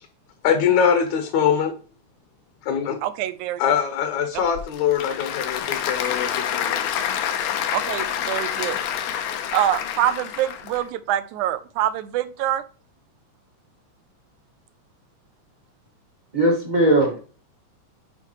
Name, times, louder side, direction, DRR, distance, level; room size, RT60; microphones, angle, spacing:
voice 1, 0.4-1.7 2.6-3.0 3.6-7.0, left 7 dB, 70° left, 6 dB, 2.0 m, -22 dB
voice 2, 3.0-3.6 7.7-8.8 9.5-12.6, right 12 dB, 80° right, 13 dB, 1.9 m, -25 dB
Applause / Crowd, 4.4-10.8, left 9 dB, 85° left, 2.4 m, -27 dB
voice 3, 16.3-17.2, right 1 dB, 35° right, -1 dB, 0.7 m, -18 dB
9.9 x 4.6 x 3.0 m, 0.38 s
omnidirectional pair, 3.7 m